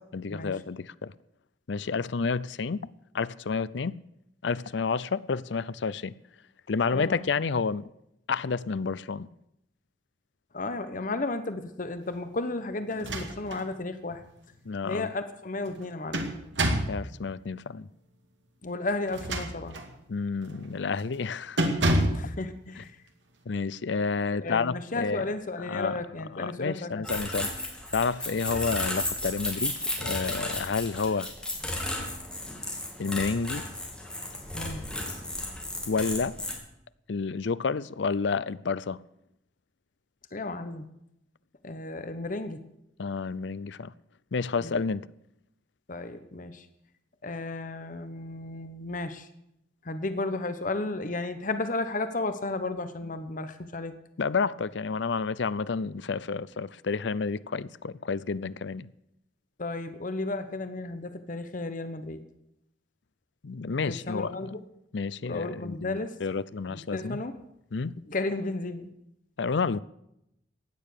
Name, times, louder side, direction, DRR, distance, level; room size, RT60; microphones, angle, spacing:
voice 1, 0.1-1.1 1.7-2.9 3.1-4.0 4.4-6.1 6.7-7.9 8.3-9.3 14.6-15.1 16.9-17.9 20.1-21.7 22.8-22.9 23.5-25.3 25.6-26.0 26.4-27.5 27.9-31.3 33.0-33.6 35.9-36.4 37.1-39.0 43.0-43.9 44.3-45.1 54.2-58.9 63.4-64.5 64.9-67.2 67.7-68.0 69.4-69.8, left 4 dB, 70° left, 0.5 m, -30 dB
voice 2, 6.9-7.2 10.5-14.2 14.8-16.2 18.6-19.8 22.1-23.0 24.3-27.2 34.5-34.8 40.3-40.9 41.6-42.6 44.6-44.8 45.9-46.7 47.2-49.3 49.8-53.9 59.6-62.2 63.9-64.6 65.2-66.2 66.7-67.3 68.1-68.9, left 2 dB, 45° left, 1.0 m, -33 dB
sound 1, 12.9-13.7 14.1-14.2 15.7-17.0 19.0-19.9 20.4-20.7 21.0-21.2 21.6-22.3, right 1 dB, 75° right, 2.2 m, -28 dB
sound 2, 27.0-36.5, left 1 dB, 5° left, 3.0 m, -34 dB
16.0 x 10.0 x 6.7 m
head